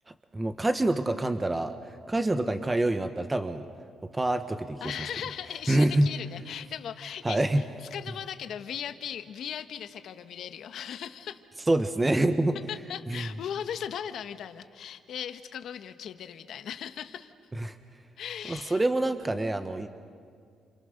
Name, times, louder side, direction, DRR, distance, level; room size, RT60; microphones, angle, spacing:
voice 1, 0.3-1.8 2.1-3.7 4.1-4.9 5.7-6.1 7.2-7.6 11.7-12.6 13.1-13.3 17.6-17.8 18.5-19.9, right 1 dB, 20° right, 8 dB, 1.2 m, -26 dB
voice 2, 4.8-7.5 7.9-11.4 12.7-17.3 18.2-18.8, left 9 dB, 70° left, 9 dB, 1.3 m, -38 dB
28.5 x 28.0 x 6.6 m, 2.2 s
cardioid pair, 90°, 0 cm